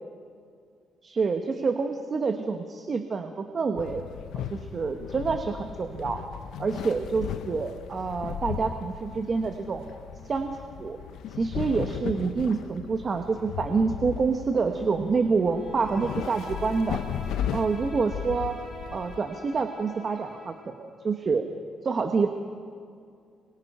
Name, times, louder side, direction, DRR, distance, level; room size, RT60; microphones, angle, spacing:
voice 1, 1.0-4.0 4.3-6.2 6.6-9.8 10.3-11.0 11.3-17.0 17.5-18.6 18.9-21.5 21.8-22.3, right 4 dB, 35° right, 5 dB, 1.4 m, -27 dB
sound 1, 3.8-19.2, left 9 dB, 85° left, 1.0 m, -36 dB
Bowed string instrument, 15.5-20.7, left 1 dB, 55° left, 5.9 m, -46 dB
29.5 x 23.0 x 5.6 m, 2.3 s
cardioid pair, 120°, 0 cm